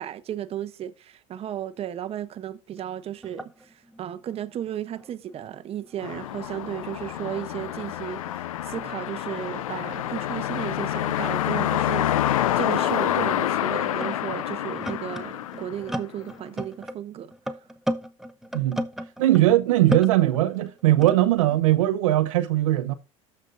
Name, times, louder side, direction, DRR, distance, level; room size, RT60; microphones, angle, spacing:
voice 1, 0.0-17.6, right 11 dB, 35° right, 0.8 m, -34 dB
sound 1, 2.8-2.9 3.1-6.0 6.3-10.1 11.0-11.1 11.8-19.6 19.9-21.6, equal, ahead, 0.8 m, -37 dB
sound 2, 6.0-16.3, left 12 dB, 85° left, 0.5 m, -27 dB
voice 2, 19.2-22.9, right 15 dB, 80° right, 0.7 m, -20 dB
13.5 x 5.3 x 2.5 m
hypercardioid pair, 90°, 17 cm